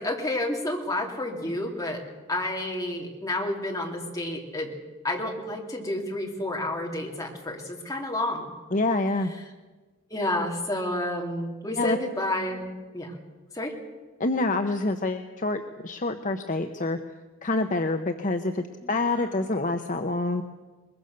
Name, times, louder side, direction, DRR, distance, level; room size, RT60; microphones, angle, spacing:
voice 1, 0.0-2.0 2.3-4.7 5.0-8.5 10.1-12.7 12.9-13.1 13.5-13.7 18.8-19.3, left 1 dB, 15° left, 0 dB, 2.8 m, -30 dB
voice 2, 8.7-9.3 11.8-12.0 14.2-17.0 17.4-20.4, left 2 dB, 35° left, 6 dB, 0.8 m, -27 dB
22.0 x 21.5 x 6.6 m, 1.3 s
head